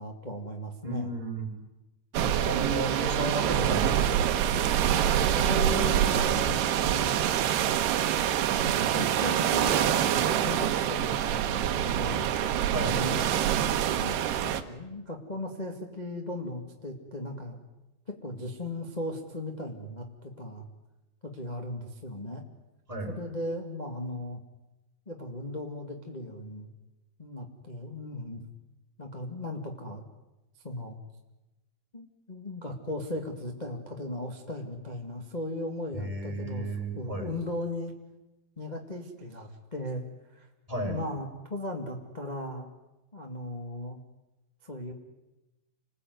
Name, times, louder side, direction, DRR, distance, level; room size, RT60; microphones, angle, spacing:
voice 1, 0.0-1.1 2.2-2.5 5.3-7.2 8.6-13.2 13.9-17.6 18.1-20.7 21.2-22.4 23.1-24.4 25.0-26.7 27.2-28.4 29.0-30.0 30.6-31.0 31.9-37.9 38.6-40.0 40.3-40.5 40.8-42.7 43.1-44.0 44.6-44.9, left 1 dB, 35° left, 2 dB, 0.6 m, -37 dB
voice 2, 0.8-1.5 2.3-4.6 12.7-13.0 22.9-23.1 35.9-37.3 40.7-41.0, right 2 dB, 10° right, -1 dB, 5.1 m, -33 dB
sound 1, 2.1-14.6, right 10 dB, 70° right, 3.0 m, -26 dB
28.5 x 20.0 x 9.5 m, 1.0 s
omnidirectional pair, 5.1 m